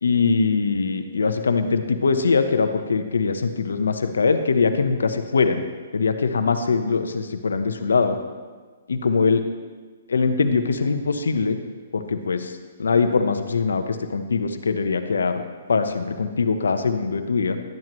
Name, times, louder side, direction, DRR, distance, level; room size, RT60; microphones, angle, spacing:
voice 1, 0.0-5.6 5.9-8.2 8.9-9.4 10.1-11.6 11.9-12.5 12.8-15.4 15.7-17.6, left 4 dB, 85° left, 8 dB, 0.9 m, -22 dB
12.0 x 10.5 x 3.1 m, 1.4 s
hypercardioid pair, 145°, 0 cm